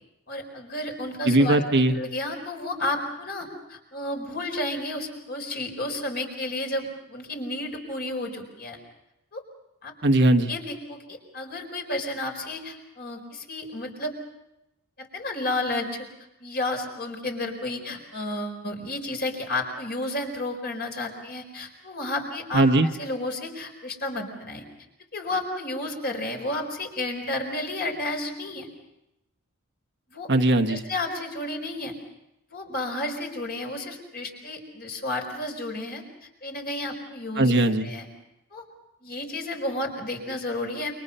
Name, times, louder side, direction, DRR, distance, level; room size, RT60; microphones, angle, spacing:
voice 1, 0.3-1.6 1.9-8.8 9.3-9.4 9.8-9.9 10.5-14.1 15.0-16.1 16.4-24.6 25.1-28.7 30.1-30.3 30.7-31.9 32.5-36.0 36.4-37.5 37.8-38.1 38.5-38.6 39.0-40.9, left 1 dB, 45° left, 3 dB, 4.7 m, -32 dB
voice 2, 1.2-2.0 10.0-10.5 22.5-22.9 30.3-30.8 37.4-37.9, right 1 dB, 50° right, 6 dB, 1.3 m, -19 dB
29.0 x 24.5 x 5.5 m, 0.89 s
head